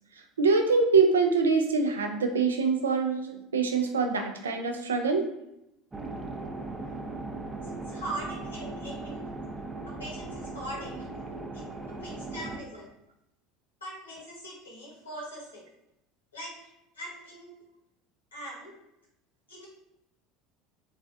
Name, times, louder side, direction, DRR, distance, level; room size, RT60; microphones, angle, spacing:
voice 1, 0.4-5.2, right 4 dB, 85° right, 4 dB, 0.3 m, -24 dB
sound 1, 5.9-12.6, right 2 dB, 20° right, 0.4 m, -38 dB
voice 2, 7.9-9.2 9.8-11.1 11.9-12.9 13.8-15.6 16.3-17.5 18.3-18.8 19.5-19.7, right 1 dB, 90° left, -4 dB, 1.0 m, -41 dB
3.1 x 2.2 x 2.5 m, 0.85 s
hypercardioid pair, 70°, 0 cm